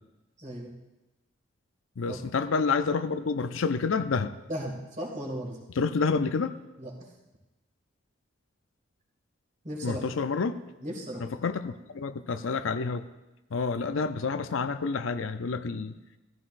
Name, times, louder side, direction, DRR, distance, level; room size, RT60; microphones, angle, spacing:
voice 1, 0.4-0.7 2.1-2.2 4.5-5.6 6.8-6.9 9.6-10.1 10.8-11.2, equal, 35° right, -1 dB, 2.3 m, -36 dB
voice 2, 2.0-4.3 5.8-6.5 9.8-10.6 11.2-13.1 13.5-15.9, left 4 dB, 85° left, 10 dB, 0.5 m, -28 dB
14.5 x 14.0 x 2.6 m, 1.1 s
head